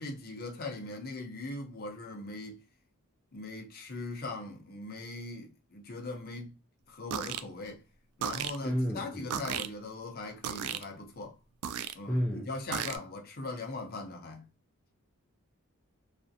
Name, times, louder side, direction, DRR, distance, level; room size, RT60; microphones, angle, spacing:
voice 1, 0.0-2.6 3.3-6.6 6.9-7.8 8.2-11.4 11.9-14.4, left 2 dB, 45° left, 0.6 m, -40 dB
sound 1, 7.1-7.4 8.2-8.6 9.3-9.7 10.4-10.8 11.6-11.9 12.7-13.0, right 9 dB, 80° right, 0.3 m, -34 dB
voice 2, 8.6-9.6 12.1-12.5, equal, 5° left, 0.3 m, -32 dB
2.4 x 2.0 x 2.6 m
head